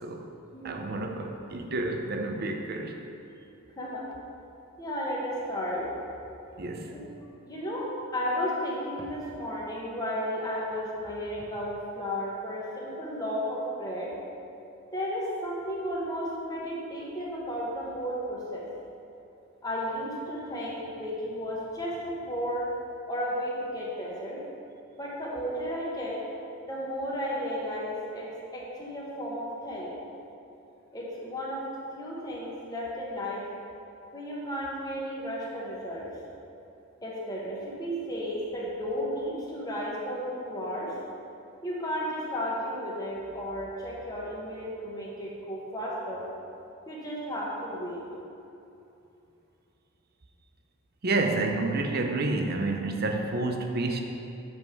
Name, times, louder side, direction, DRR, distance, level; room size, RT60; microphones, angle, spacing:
voice 1, 0.6-3.0 6.6-7.0 51.0-54.0, right 2 dB, 45° right, 4 dB, 0.6 m, -29 dB
voice 2, 4.8-5.9 6.9-7.0 7.5-14.1 14.9-18.7 19.6-22.6 23.1-24.4 25.0-26.2 26.6-30.1 30.9-31.6 31.9-33.4 34.1-36.1 37.0-40.9 41.6-46.3 46.9-48.0, equal, 15° left, -5 dB, 1.1 m, -33 dB
7.2 x 5.3 x 4.7 m, 2.8 s
head